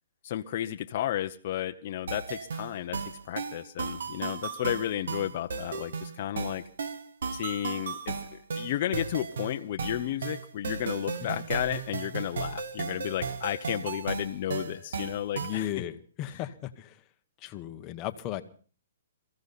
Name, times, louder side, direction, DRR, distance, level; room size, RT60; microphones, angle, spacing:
voice 1, 0.2-3.0 3.3-6.6 7.3-8.1 8.5-15.7, left 12 dB, 40° left, 6 dB, 0.8 m, -32 dB
sound 1, 2.1-15.7, right 5 dB, 70° right, 1.6 m, -35 dB
voice 2, 15.4-17.0 17.4-18.4, left 12 dB, 20° left, 8 dB, 1.1 m, -36 dB
23.0 x 15.0 x 4.1 m, 0.40 s
hypercardioid pair, 165°, 0 cm